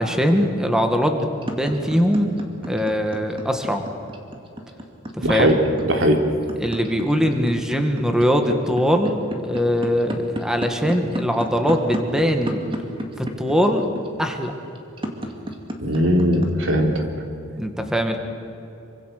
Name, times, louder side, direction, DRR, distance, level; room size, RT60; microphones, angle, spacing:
voice 1, 0.0-2.3 2.7-3.8 5.2-5.6 6.6-12.6 13.2-13.8 14.2-14.5 17.6-18.2, equal, 5° right, 5 dB, 1.9 m, -21 dB
sound 1, 1.2-16.7, equal, 25° right, 2.4 m, -30 dB
voice 2, 5.2-5.5 5.8-6.2 15.8-17.0, equal, 65° right, 3 dB, 3.2 m, -19 dB
27.0 x 25.0 x 6.7 m, 2.8 s
head